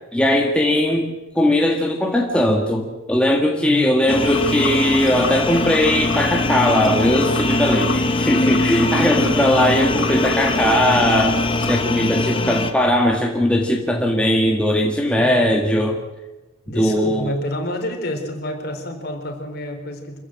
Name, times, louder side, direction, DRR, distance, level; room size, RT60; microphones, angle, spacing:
voice 1, 0.1-16.0 16.7-17.3, left 1 dB, 5° left, 0 dB, 1.7 m, -19 dB
voice 2, 3.6-4.0 9.1-9.5 15.1-15.5 16.7-20.2, left 1 dB, 50° left, 3 dB, 3.9 m, -29 dB
sound 1, 4.1-12.7, left 2 dB, 25° left, 1.4 m, -21 dB
sound 2, 4.2-11.8, left 3 dB, 80° left, 2.9 m, -33 dB
26.0 x 15.0 x 7.6 m, 1.1 s
head